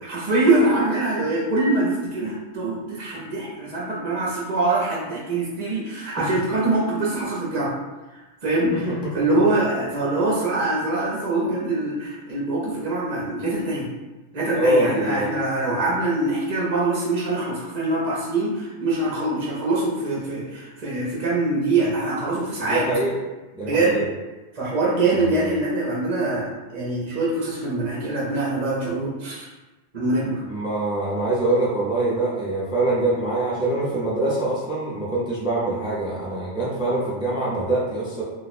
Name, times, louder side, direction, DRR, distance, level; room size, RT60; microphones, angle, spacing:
voice 1, 0.0-7.7 8.4-8.9 9.1-13.9 14.3-22.8 23.6-24.0 24.5-29.5 29.9-30.4, right 2 dB, 40° right, -6 dB, 0.7 m, -24 dB
voice 2, 8.7-9.1 14.5-15.3 22.6-23.1 23.5-24.1 25.1-25.6 30.5-38.2, right 2 dB, 5° right, -7 dB, 0.4 m, -24 dB
2.5 x 2.2 x 4.0 m, 1.2 s
omnidirectional pair, 1.3 m